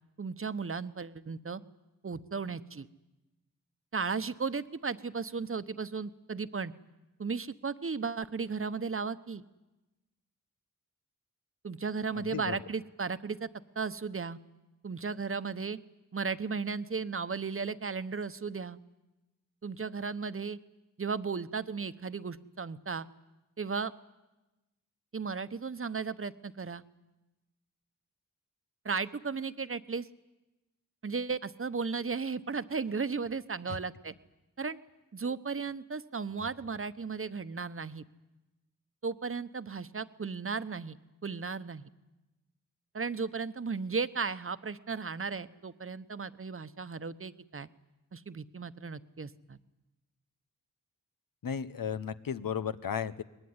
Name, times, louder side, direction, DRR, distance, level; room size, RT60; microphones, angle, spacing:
voice 1, 0.2-1.6 2.0-2.9 3.9-6.7 7.2-9.4 11.6-13.5 13.7-14.4 14.8-15.8 16.1-18.8 19.6-20.6 21.0-23.1 23.6-23.9 25.1-26.8 28.8-30.1 31.0-34.1 34.6-34.8 35.1-38.0 39.0-41.0 41.2-41.9 42.9-47.7 48.1-49.6, right 5 dB, 40° right, 13 dB, 1.1 m, -35 dB
voice 2, 12.1-12.6 33.7-33.8 51.4-53.2, left 7 dB, 80° left, 12 dB, 1.1 m, -35 dB
23.5 x 20.5 x 9.7 m, 1.0 s
cardioid pair, 60°, 33 cm